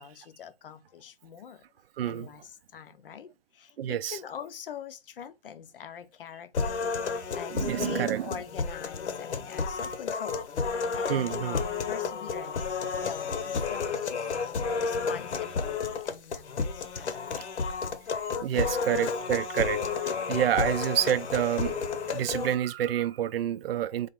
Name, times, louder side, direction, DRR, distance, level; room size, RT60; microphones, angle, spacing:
voice 1, 0.0-1.6 2.1-6.8 7.1-14.2 14.6-17.8 18.5-18.7, left 8 dB, 55° left, 0.6 m, -43 dB
voice 2, 2.0-2.3 3.8-4.2 7.5-8.3 11.1-11.6 18.4-21.8 22.0-24.1, right 11 dB, 60° right, 0.4 m, -28 dB
sound 1, 6.5-22.5, left 5 dB, 75° left, 1.0 m, -31 dB
4.1 x 2.5 x 4.5 m
hypercardioid pair, 170°, 34 cm